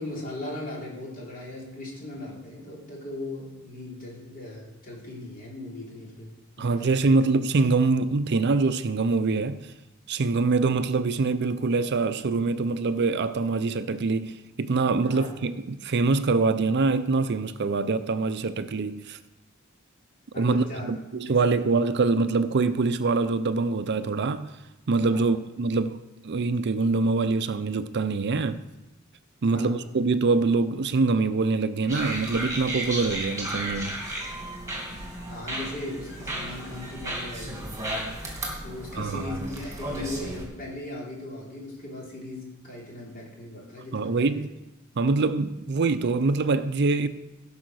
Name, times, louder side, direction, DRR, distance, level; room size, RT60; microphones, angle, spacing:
voice 1, 0.0-7.0 15.1-15.3 20.3-20.9 21.3-21.4 25.1-25.3 29.5-29.8 35.3-37.8 38.6-44.4, left 1 dB, 40° left, 3.6 m, -38 dB
voice 2, 6.6-9.7 10.1-19.2 20.4-24.5 24.9-28.6 29.4-34.0 39.0-39.2 43.9-44.5 45.0-47.1, right 3 dB, 55° right, 0.5 m, -24 dB
sound 1, 31.9-40.5, right 1 dB, 15° right, 2.5 m, -34 dB
15.5 x 5.6 x 6.4 m
head